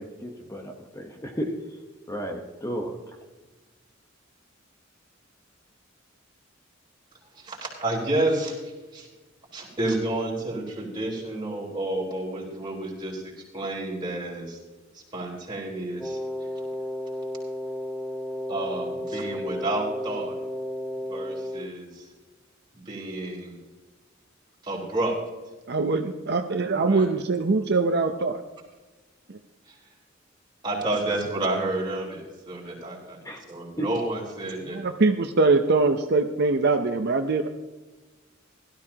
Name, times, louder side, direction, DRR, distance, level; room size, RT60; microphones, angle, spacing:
voice 1, 0.0-1.5 2.1-2.9 33.2-33.4, equal, 15° left, 2 dB, 1.1 m, -34 dB
voice 2, 7.3-9.1 9.5-14.6 14.9-16.2 18.5-20.4 21.1-22.1 22.7-23.6 24.6-25.2 26.8-27.1 29.7-29.8 30.6-33.2 33.5-34.8, right 2 dB, 25° right, -4 dB, 4.0 m, -30 dB
Wind instrument woodwind instrument, 16.0-21.7, equal, ahead, 0.6 m, -33 dB
voice 3, 25.7-28.4 34.7-37.5, right 3 dB, 55° right, 6 dB, 0.7 m, -23 dB
17.0 x 13.0 x 2.9 m, 1.2 s
head